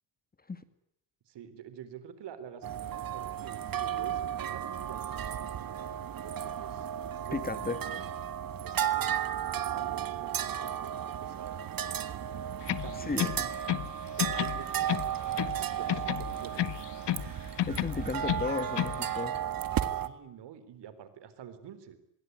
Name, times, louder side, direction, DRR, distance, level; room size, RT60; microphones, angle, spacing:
voice 1, 1.3-5.9 6.2-8.0 8.6-9.1 9.6-11.6 12.7-13.5 14.2-16.8 19.9-22.0, right 9 dB, 70° right, 13 dB, 4.1 m, -48 dB
sound 1, 2.6-20.1, right 10 dB, 50° right, 1.8 m, -34 dB
voice 2, 7.3-7.8 13.1-13.3 17.7-19.4, left 4 dB, 20° left, 12 dB, 2.0 m, -34 dB
sound 2, 12.6-13.9 14.2-15.6 15.9-17.3 17.6-19.0, left 13 dB, 70° left, 1.5 m, -32 dB
25.0 x 22.0 x 9.6 m, 0.76 s
cardioid pair, 120°, 42 cm